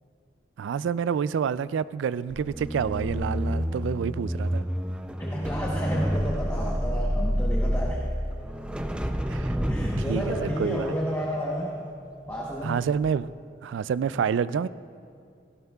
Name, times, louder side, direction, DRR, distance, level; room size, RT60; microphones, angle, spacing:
voice 1, 0.6-4.7 9.3-9.6 10.1-10.9 12.6-13.3 13.6-14.7, right 7 dB, 80° right, 17 dB, 0.3 m, -28 dB
sound 1, 2.3-12.6 13.0-13.2, equal, 5° right, 0.4 m, -29 dB
voice 2, 5.2-8.1 9.7-11.8 12.3-12.8, equal, 15° left, -3 dB, 1.0 m, -31 dB
17.5 x 16.5 x 2.3 m, 2.3 s
head